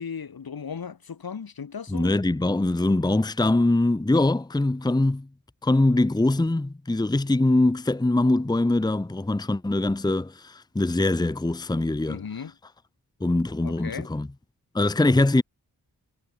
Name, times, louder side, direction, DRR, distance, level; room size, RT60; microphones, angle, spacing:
voice 1, 0.0-2.1 12.1-12.6 13.6-14.1, left 6 dB, 75° left, 3.9 m, -36 dB
voice 2, 1.9-5.3 5.6-12.2 13.2-14.3 14.7-15.4, left 2 dB, 10° left, 0.9 m, -23 dB
wide cardioid pair, 95°, 37 cm